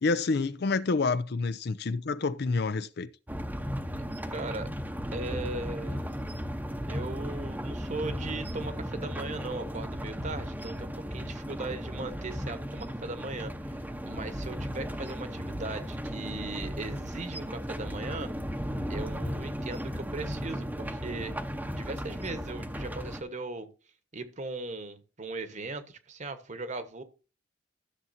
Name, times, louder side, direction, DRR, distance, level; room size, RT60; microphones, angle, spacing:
voice 1, 0.0-3.1, left 3 dB, 55° left, 0.5 m, -28 dB
sound 1, 3.3-23.2, equal, 10° right, 0.8 m, -36 dB
voice 2, 4.3-4.7 5.1-6.1 6.9-13.8 14.0-18.3 18.9-21.3 21.7-23.7 24.1-27.0, right 3 dB, 40° right, 1.2 m, -38 dB
13.5 x 7.1 x 2.7 m
head